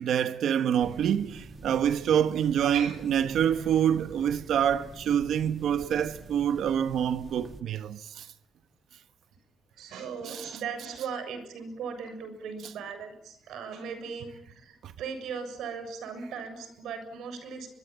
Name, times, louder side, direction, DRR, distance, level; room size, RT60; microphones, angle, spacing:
voice 1, 0.0-8.3 10.2-10.6 14.8-14.9, right 9 dB, 65° right, 1.1 m, -26 dB
sound 1, 0.8-7.6, right 2 dB, 30° right, 1.8 m, -46 dB
voice 2, 9.8-17.7, right 6 dB, 90° right, 7.0 m, -38 dB
24.0 x 23.5 x 9.0 m
cardioid pair, 180°, 0 cm